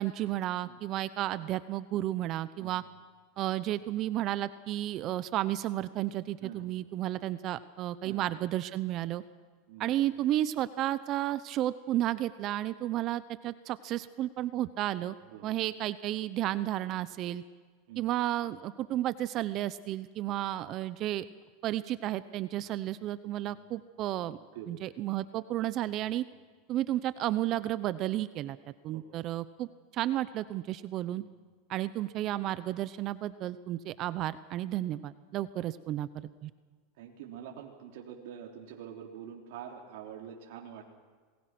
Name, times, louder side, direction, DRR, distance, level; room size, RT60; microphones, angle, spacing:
voice 1, 0.0-2.8 3.4-9.2 9.8-15.2 15.4-17.4 18.0-21.2 21.6-24.4 24.7-26.2 26.7-28.6 28.8-31.2 31.7-36.5, right 14 dB, 40° right, 15 dB, 0.8 m, -32 dB
voice 2, 15.2-15.6 17.9-18.0 23.4-23.5 24.5-24.9 28.9-29.1 37.0-40.9, right 9 dB, 70° right, 0 dB, 3.4 m, -45 dB
27.5 x 21.0 x 6.1 m, 1.5 s
supercardioid pair, 135°, 0 cm